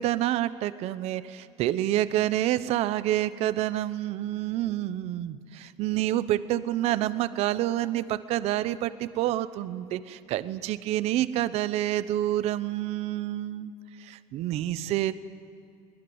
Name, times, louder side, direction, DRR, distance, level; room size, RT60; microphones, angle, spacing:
voice 1, 0.0-13.7 14.0-15.1, right 13 dB, 55° right, 14 dB, 0.9 m, -28 dB
23.5 x 20.0 x 8.0 m, 2.6 s
cardioid pair, 140°, 12 cm